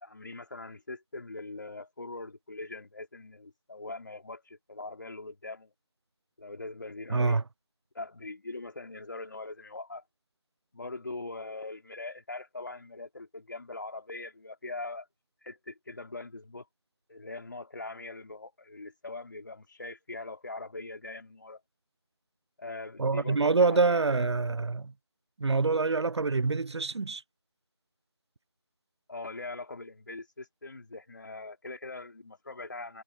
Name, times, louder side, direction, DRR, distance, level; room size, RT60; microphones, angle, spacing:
voice 1, 0.0-5.7 6.4-7.4 7.9-10.0 10.7-15.1 15.4-16.6 17.1-21.6 22.6-24.3 29.1-33.0, left 2 dB, 45° left, 3.4 m, -42 dB
voice 2, 7.1-7.4 23.0-24.9 25.4-27.2, right 3 dB, 80° right, 0.4 m, -26 dB
figure-of-eight pair, 165°, 14 cm